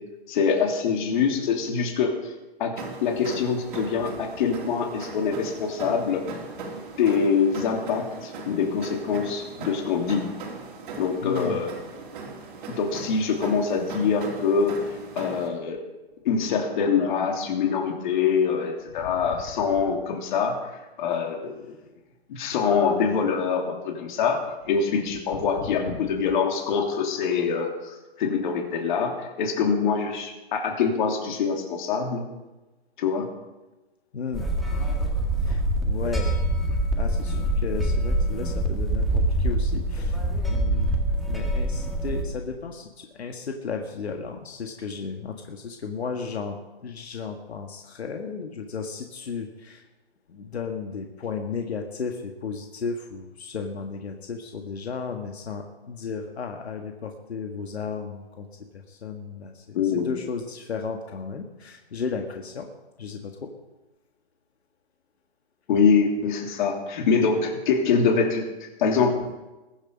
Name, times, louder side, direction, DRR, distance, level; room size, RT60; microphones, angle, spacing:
voice 1, 0.3-2.1 2.6-2.7 3.0-6.2 7.0-10.3 11.0-11.7 12.8-14.8 15.1-15.8 16.2-20.6 21.0-21.6 22.3-24.4 24.7-29.1 29.4-32.2 33.0-33.2 37.3-37.4 59.7-60.1 65.7-68.4 68.8-69.1, left 6 dB, 50° left, 2 dB, 3.0 m, -24 dB
sound 1, 2.8-15.5, right 4 dB, 50° right, 3.6 m, -39 dB
voice 2, 11.2-11.6 19.0-19.1 25.6-26.0 34.1-34.5 35.4-36.4 36.9-40.2 40.5-40.9 41.3-46.6 46.8-49.8 50.3-58.5 58.7-62.7 63.0-63.5, left 5 dB, 80° left, 3 dB, 1.7 m, -34 dB
sound 2, 34.3-42.2, right 1 dB, ahead, 1.8 m, -25 dB
21.5 x 7.4 x 5.3 m, 1.1 s
hypercardioid pair, 140°, 32 cm